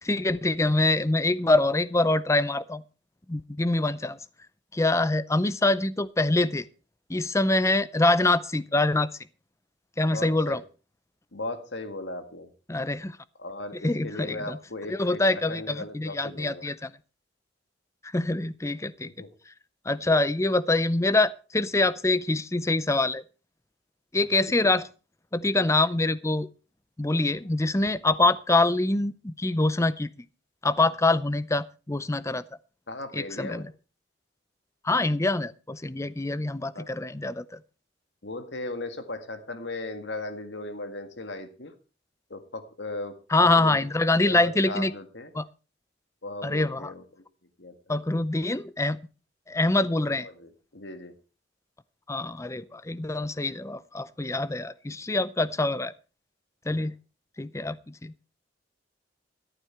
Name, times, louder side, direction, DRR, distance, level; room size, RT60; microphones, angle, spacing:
voice 1, 0.0-2.8 3.3-4.2 4.7-6.7 7.1-9.1 10.0-10.6 12.7-13.2 13.7-14.6 14.9-16.9 18.0-19.1 19.9-23.2 24.1-24.9 25.3-26.5 27.0-30.1 30.6-32.4 33.1-33.7 34.8-37.6 43.3-44.9 45.3-45.5 46.4-46.9 47.9-49.0 49.5-50.3 52.1-55.9 56.7-56.9 57.4-57.8 58.0-58.1, left 2 dB, 15° left, 0.5 m, -25 dB
voice 2, 10.1-10.6 11.3-12.5 13.4-15.2 15.5-16.6 19.2-19.3 24.6-24.7 32.9-33.6 36.7-36.9 38.2-41.7 42.3-43.2 43.4-43.8 44.1-45.3 46.2-47.2 47.6-47.7 50.2-51.1 56.7-56.9, left 2 dB, 65° left, 1.8 m, -37 dB
13.0 x 11.5 x 4.5 m
head